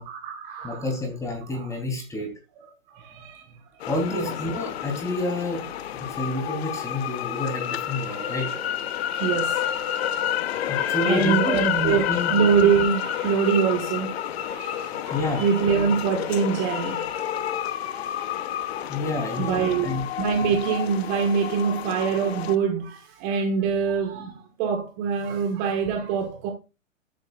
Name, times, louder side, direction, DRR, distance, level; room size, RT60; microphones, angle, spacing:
voice 1, 0.0-0.9 1.5-1.8 2.9-3.4 4.1-4.3 7.7-7.8 8.1-8.6 9.1-10.2 10.7-14.1 14.5-17.2 17.9-18.8 19.2-19.9 20.2-26.5, right 6 dB, 35° right, 1.7 m, -25 dB
voice 2, 0.6-2.3 3.8-5.7 6.1-8.5 10.7-12.3 15.1-15.4 18.9-20.1, left 2 dB, 10° left, 3.4 m, -29 dB
sound 1, 3.8-22.5, left 11 dB, 50° left, 1.0 m, -29 dB
13.0 x 8.5 x 2.5 m
figure-of-eight pair, 115°, 39 cm